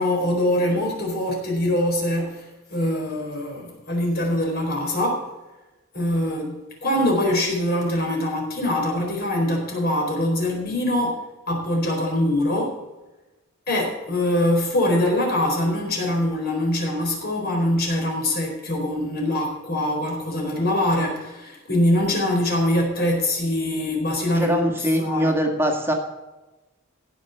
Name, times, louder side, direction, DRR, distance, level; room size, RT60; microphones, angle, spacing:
voice 1, 0.0-5.2 5.9-11.2 11.5-12.7 13.7-24.6 25.0-25.4, left 1 dB, 50° left, 0 dB, 4.2 m, -23 dB
voice 2, 24.4-25.9, equal, 10° right, 3 dB, 1.8 m, -22 dB
15.5 x 6.4 x 5.9 m, 1.1 s
head